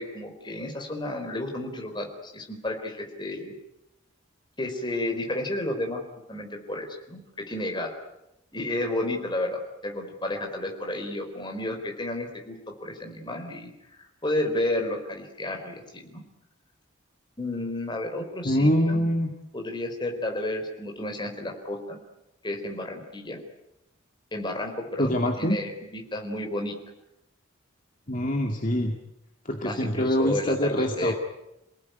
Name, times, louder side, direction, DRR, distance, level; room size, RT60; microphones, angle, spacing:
voice 1, 0.0-3.5 4.6-6.0 6.3-7.9 8.5-13.7 14.0-16.2 17.4-19.1 19.5-22.0 22.4-23.4 24.3-26.8 29.6-31.1, left 1 dB, 25° left, 3 dB, 4.3 m, -32 dB
voice 2, 18.4-19.3 25.0-25.6 28.1-28.9 29.5-31.1, equal, 40° left, 2 dB, 2.3 m, -24 dB
28.0 x 18.5 x 9.4 m, 0.88 s
head